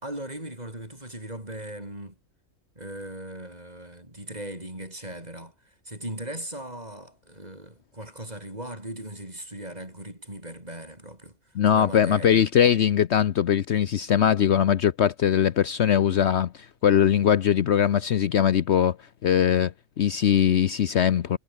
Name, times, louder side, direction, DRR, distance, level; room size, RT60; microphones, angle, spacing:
voice 1, 0.0-2.2 2.8-11.4 11.6-12.5, right 1 dB, 30° right, 6.4 m, -38 dB
voice 2, 11.5-19.0 19.2-21.4, left 9 dB, 60° left, 1.0 m, -21 dB
omnidirectional pair, 1.4 m